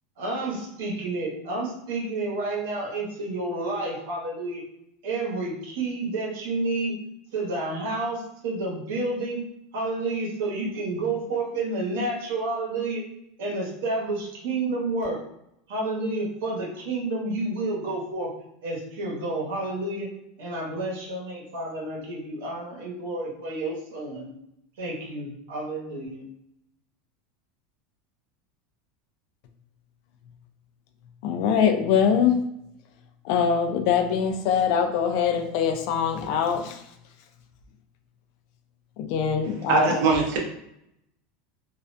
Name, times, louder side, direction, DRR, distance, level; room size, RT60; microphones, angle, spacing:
voice 1, 0.2-4.6 5.0-6.9 7.3-9.4 9.7-13.0 13.4-15.2 15.7-18.3 18.6-20.1 20.4-24.3 24.8-26.2, right 2 dB, 90° right, -3 dB, 0.9 m, -30 dB
voice 2, 31.2-32.4 33.2-36.8 39.0-40.0, left 7 dB, 60° left, 6 dB, 0.3 m, -23 dB
voice 3, 39.7-40.4, right 4 dB, 65° right, 1 dB, 0.6 m, -21 dB
2.3 x 2.1 x 2.5 m, 0.78 s
supercardioid pair, 155°, 0 cm